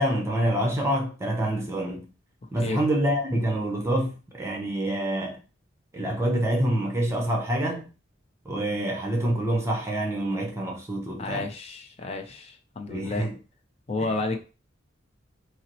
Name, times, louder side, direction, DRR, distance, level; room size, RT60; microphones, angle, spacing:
voice 1, 0.0-2.1 2.5-5.4 5.9-7.9 8.4-11.5 12.9-13.3 14.0-14.4, right 1 dB, 15° right, 0.7 m, -27 dB
voice 2, 11.2-13.3 13.9-14.4, left 3 dB, 35° left, 0.6 m, -31 dB
5.4 x 2.0 x 3.0 m
head